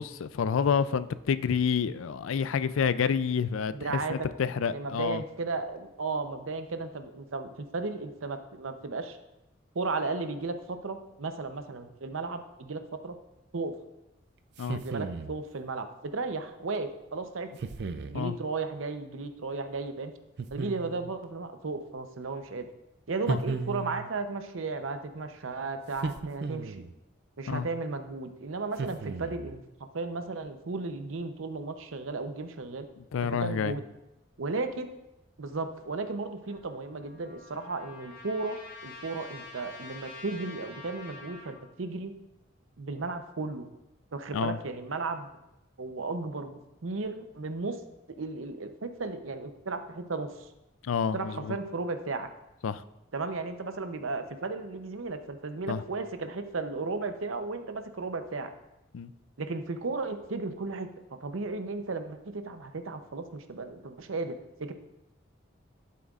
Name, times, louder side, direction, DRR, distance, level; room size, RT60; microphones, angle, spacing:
voice 1, 0.0-5.2 14.6-14.8 18.1-18.4 23.3-23.4 27.5-27.7 33.1-33.7 44.3-44.6 50.8-51.6 52.6-52.8 55.7-55.8 58.9-59.1, left 6 dB, 80° left, 15 dB, 0.4 m, -29 dB
voice 2, 3.7-4.3 4.6-9.2 9.7-13.2 13.5-13.8 14.7-17.5 18.1-20.1 20.5-22.7 23.1-26.8 27.4-32.9 33.4-33.8 34.4-34.9 35.4-38.6 38.8-42.1 42.8-43.7 44.1-45.3 45.8-47.8 48.2-50.5 51.1-52.3 53.1-58.5 59.4-60.9 61.2-64.7, right 3 dB, 80° right, 8 dB, 0.7 m, -35 dB
sound 1, 14.6-15.4 17.6-18.2 20.4-21.2 23.3-24.1 25.9-26.9 28.8-29.5, right 4 dB, 55° right, 0.4 m, -35 dB
Trumpet, 36.5-41.6, left 3 dB, 55° left, 3.2 m, -47 dB
11.5 x 8.4 x 2.4 m, 0.93 s
head